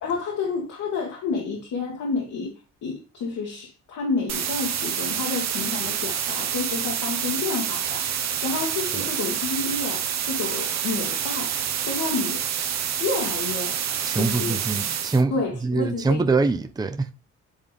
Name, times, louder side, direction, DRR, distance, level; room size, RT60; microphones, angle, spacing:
voice 1, 0.0-2.5 2.8-12.4 13.0-13.8 14.1-14.6 15.3-16.2, left 4 dB, 75° left, 1.8 m, -30 dB
sound 1, 4.3-15.2, right 9 dB, 60° right, 0.9 m, -27 dB
voice 2, 14.1-15.3 15.6-17.1, right 3 dB, 15° right, 0.6 m, -23 dB
8.2 x 3.6 x 3.5 m
cardioid pair, 90°, 30 cm